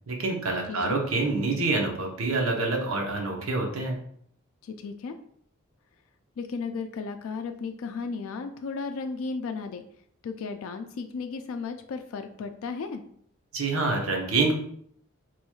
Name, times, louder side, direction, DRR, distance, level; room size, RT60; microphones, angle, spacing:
voice 1, 0.1-4.0 13.5-14.5, right 3 dB, 80° right, 1 dB, 0.9 m, -26 dB
voice 2, 0.7-1.0 4.6-5.2 6.4-9.8 10.2-13.0, left 4 dB, 75° left, 6 dB, 0.3 m, -34 dB
4.4 x 3.0 x 2.3 m, 0.65 s
head